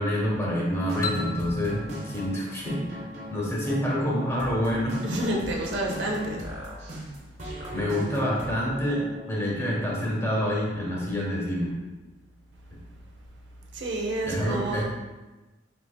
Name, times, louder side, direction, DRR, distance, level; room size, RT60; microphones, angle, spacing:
voice 1, 0.0-3.0 3.3-5.2 7.7-11.7 14.2-14.8, equal, 15° left, -5 dB, 1.1 m, -27 dB
sound 1, 0.7-9.2, equal, 35° right, 1.1 m, -38 dB
sound 2, 1.0-3.7, left 3 dB, 45° left, 0.4 m, -37 dB
voice 2, 5.0-6.4 13.7-14.8, right 1 dB, 60° right, -1 dB, 0.7 m, -29 dB
5.0 x 4.7 x 2.2 m, 1.1 s
head